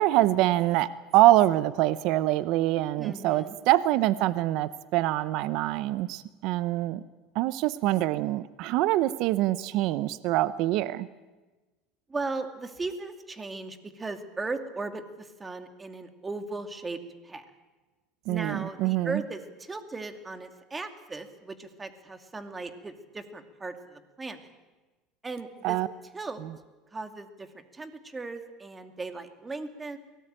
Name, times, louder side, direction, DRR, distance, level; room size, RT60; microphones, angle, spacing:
voice 1, 0.0-7.0 7.3-11.1 18.3-19.2 25.6-25.9, right 15 dB, 65° right, 16 dB, 0.8 m, -25 dB
voice 2, 3.0-3.6 12.1-17.0 17.2-17.5 18.3-24.5 25.2-25.8 26.1-26.4 26.9-30.0, right 3 dB, 20° right, 7 dB, 2.4 m, -37 dB
23.0 x 18.5 x 9.0 m, 1.2 s
supercardioid pair, 110°, 0 cm